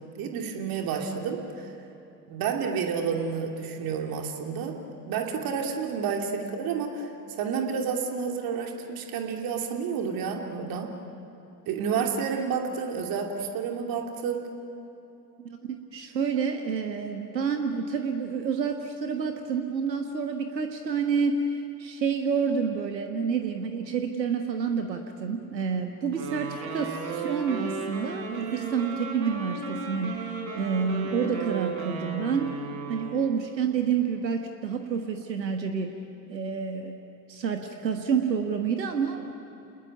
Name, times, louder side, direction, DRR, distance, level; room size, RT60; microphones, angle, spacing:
voice 1, 0.1-1.7 2.3-4.7 5.1-7.1 7.4-10.9 11.7-14.5, right 6 dB, 45° right, 2 dB, 2.8 m, -30 dB
voice 2, 15.4-32.5 32.9-36.0 36.3-37.0 37.3-39.3, right 6 dB, 80° right, 5 dB, 1.5 m, -29 dB
Wind instrument woodwind instrument, 26.1-33.3, right 4 dB, 60° right, 6.7 m, -35 dB
29.0 x 20.5 x 9.4 m, 2.9 s
figure-of-eight pair, 70°, 50 cm